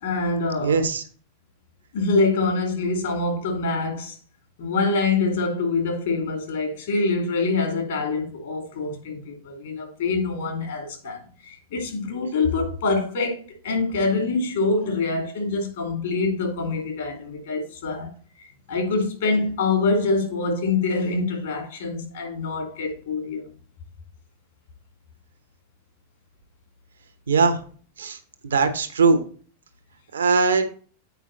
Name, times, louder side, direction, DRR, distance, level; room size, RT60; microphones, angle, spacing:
voice 1, 0.0-0.8 1.9-4.1 4.6-18.1 18.4-23.5, left 3 dB, 60° left, 2.6 m, -25 dB
voice 2, 0.6-1.0 27.3-27.6 28.0-28.2 28.4-29.2 30.1-30.6, right 4 dB, 70° right, 1.0 m, -20 dB
8.3 x 4.9 x 4.0 m
figure-of-eight pair, 90°, 0 cm